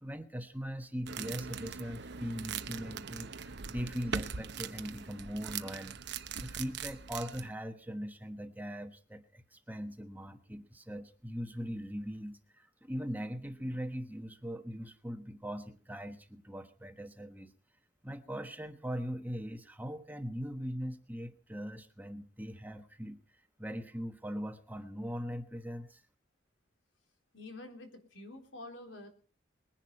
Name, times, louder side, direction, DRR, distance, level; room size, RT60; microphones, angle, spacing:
voice 1, 0.0-6.0 6.4-17.5 18.0-23.2 23.6-26.0, equal, 10° right, 7 dB, 1.2 m, -40 dB
sound 1, 1.1-7.5, right 6 dB, 65° right, 0.9 m, -41 dB
voice 2, 27.3-29.1, left 2 dB, 90° left, 5 dB, 3.7 m, -48 dB
21.0 x 11.0 x 5.6 m, 0.39 s
head